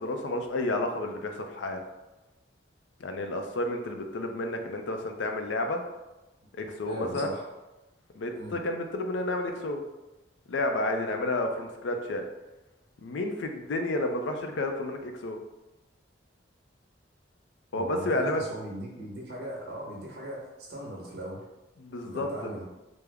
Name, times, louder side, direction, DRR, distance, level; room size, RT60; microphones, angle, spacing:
voice 1, 0.0-1.8 3.0-5.8 6.5-7.3 8.1-9.8 10.5-12.2 13.0-15.4 17.7-18.4 21.8-22.5, left 2 dB, 75° left, 5 dB, 0.4 m, -31 dB
voice 2, 6.5-7.5 8.3-8.6 17.7-21.4 22.0-22.7, right 1 dB, 55° right, -3 dB, 1.0 m, -39 dB
3.4 x 2.0 x 3.3 m, 1.0 s
head